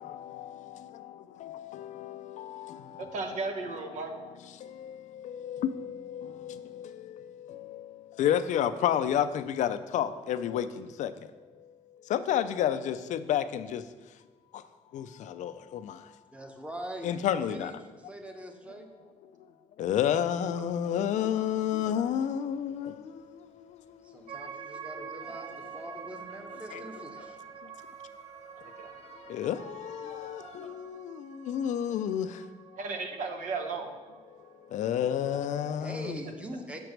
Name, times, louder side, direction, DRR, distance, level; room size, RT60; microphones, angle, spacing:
voice 1, 0.0-0.9 1.4-3.1 4.6-11.3 11.6-11.7 12.1-13.8 14.5-14.6 14.9-16.1 17.0-17.7 19.8-24.8 26.7-26.8 27.6-27.7 29.3-32.4 34.6-36.2, left 9 dB, 80° left, 12 dB, 0.4 m, -31 dB
voice 2, 3.0-4.1 28.8-28.9 32.8-34.0, right 4 dB, 85° right, 5 dB, 0.9 m, -35 dB
voice 3, 16.3-17.1 17.5-18.9 24.0-27.4 35.8-36.8, right 1 dB, 10° right, 4 dB, 0.8 m, -42 dB
sound 1, 20.3-30.7, left 5 dB, 60° left, 0.7 m, -53 dB
sound 2, 24.3-34.7, right 7 dB, 65° right, 0.5 m, -47 dB
5.9 x 4.6 x 6.4 m, 1.3 s
cardioid pair, 130°, 12 cm